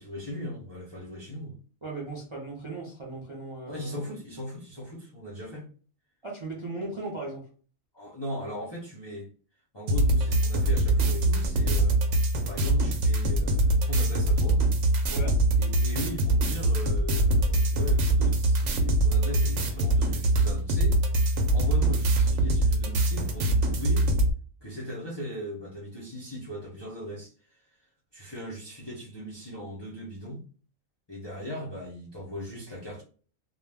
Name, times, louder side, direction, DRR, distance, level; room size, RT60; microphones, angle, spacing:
voice 1, 0.0-1.6 3.6-5.7 7.9-9.3 9.7-12.0 12.4-14.6 15.5-21.0 21.5-24.1 24.6-27.6 28.1-30.4 31.1-33.0, equal, 30° left, 0.4 m, -38 dB
voice 2, 1.8-4.0 6.2-7.4 15.1-15.4, right 2 dB, 40° right, 0.4 m, -37 dB
sound 1, 9.9-24.3, right 1 dB, 65° right, 0.8 m, -23 dB
2.2 x 2.1 x 3.3 m
omnidirectional pair, 1.4 m